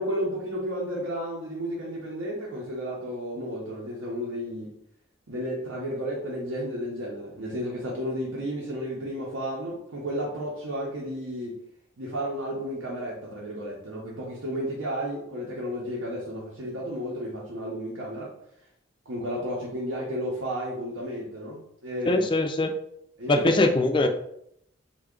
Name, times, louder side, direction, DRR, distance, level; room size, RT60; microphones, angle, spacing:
voice 1, 0.0-4.7 5.3-11.6 12.0-18.3 19.1-22.3 23.2-23.7, equal, 90° right, -4 dB, 0.8 m, -32 dB
voice 2, 22.1-22.7 23.3-24.1, left 2 dB, 25° left, 6 dB, 0.3 m, -22 dB
3.3 x 2.3 x 3.6 m, 0.73 s
head